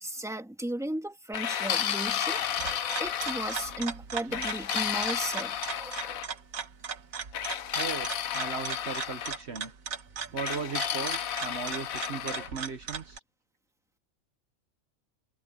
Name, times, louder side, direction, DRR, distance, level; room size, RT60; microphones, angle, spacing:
voice 1, 0.0-6.3, right 1 dB, ahead, 1.9 m, -36 dB
sound 1, 1.3-3.8 4.3-6.3 7.3-9.4 10.4-12.5, left 9 dB, 90° left, 1.3 m, -32 dB
sound 2, 2.1-13.2, right 6 dB, 85° right, 1.8 m, -38 dB
voice 2, 7.7-9.7 10.3-13.2, right 5 dB, 55° right, 1.3 m, -37 dB
omnidirectional pair, 1.4 m